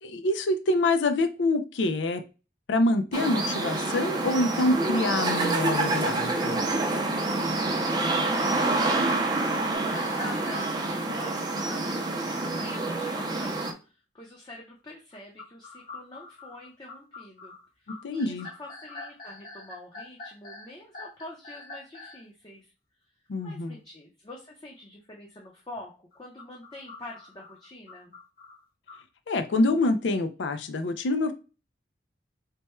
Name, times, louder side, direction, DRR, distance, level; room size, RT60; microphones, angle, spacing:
voice 1, 0.0-2.2 2.7-6.6 18.0-18.5 23.3-23.7 29.3-31.3, left 2 dB, 90° left, 9 dB, 0.4 m, -26 dB
sound 1, 3.1-13.7, right 2 dB, 25° right, 0.5 m, -27 dB
voice 2, 7.6-22.7 23.4-28.1, left 1 dB, 25° left, -2 dB, 0.6 m, -46 dB
sound 2, 9.7-10.8 15.1-22.2 26.1-29.0, left 2 dB, 50° left, 1.0 m, -44 dB
3.3 x 2.2 x 4.2 m, 0.32 s
head